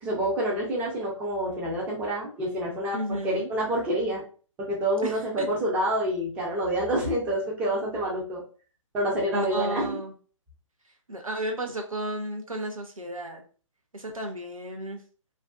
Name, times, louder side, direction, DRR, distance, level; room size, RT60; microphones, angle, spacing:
voice 1, 0.0-4.2 4.6-8.4 8.9-10.0, right 1 dB, 10° right, -3 dB, 0.4 m, -27 dB
voice 2, 2.9-3.5 5.0-5.5 9.3-10.1 11.1-13.4 13.9-15.0, right 1 dB, 90° right, 2 dB, 0.7 m, -33 dB
2.4 x 2.3 x 2.2 m, 0.39 s
figure-of-eight pair, 135°, 17 cm